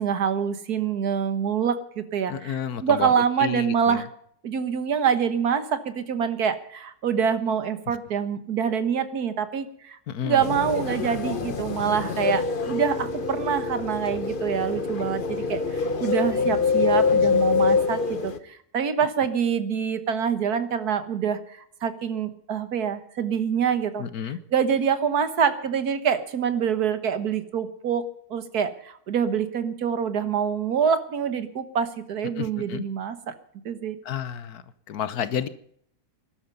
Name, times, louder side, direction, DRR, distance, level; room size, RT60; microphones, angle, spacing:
voice 1, 0.0-4.1 4.4-10.0 10.2-28.0 28.3-33.3 33.7-34.0, right 7 dB, 85° right, 11 dB, 1.8 m, -26 dB
voice 2, 2.3-3.1 3.4-4.0 10.1-10.4 24.0-24.4 32.4-32.8 34.0-34.6 34.9-35.5, left 8 dB, 75° left, 14 dB, 1.5 m, -30 dB
sound 1, 10.4-18.4, left 5 dB, 40° left, 1.1 m, -25 dB
19.5 x 12.0 x 5.4 m, 0.66 s
omnidirectional pair, 1.6 m